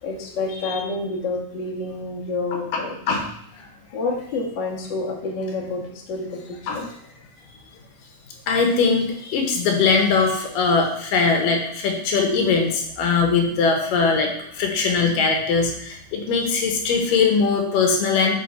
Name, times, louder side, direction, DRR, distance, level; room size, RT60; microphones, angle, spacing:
voice 1, 0.0-3.0 3.9-6.9, left 3 dB, 50° left, -2 dB, 1.4 m, -28 dB
voice 2, 2.5-2.8 3.1-3.3 3.5-3.7 6.7-6.8 8.5-18.3, left 4 dB, 75° left, 3 dB, 2.6 m, -21 dB
8.6 x 4.9 x 4.4 m, 0.72 s
omnidirectional pair, 4.0 m